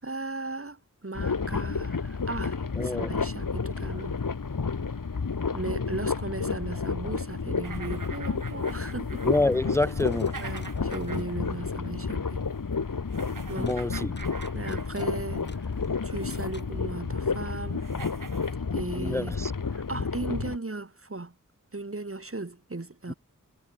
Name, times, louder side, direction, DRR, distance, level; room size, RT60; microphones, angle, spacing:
voice 1, 0.0-4.2 5.5-9.3 10.4-12.5 13.5-13.9 14.5-15.7 16.0-17.8 18.7-19.3 19.7-21.3 21.7-23.1, right 3 dB, 45° right, 5.7 m, -37 dB
sound 1, 1.1-20.6, left 5 dB, 80° left, 2.8 m, -31 dB
voice 2, 2.8-3.1 9.2-10.3 13.6-14.1 19.0-19.5, left 2 dB, 10° left, 0.4 m, -27 dB
sound 2, 7.6-11.5 11.8-12.0 13.1-15.5 16.0-16.6 17.4-17.5 17.8-18.5, right 5 dB, 80° right, 2.8 m, -45 dB
sound 3, 9.7-11.3 13.7-16.8, left 2 dB, 35° left, 7.5 m, -53 dB
wide cardioid pair, 75°, 32 cm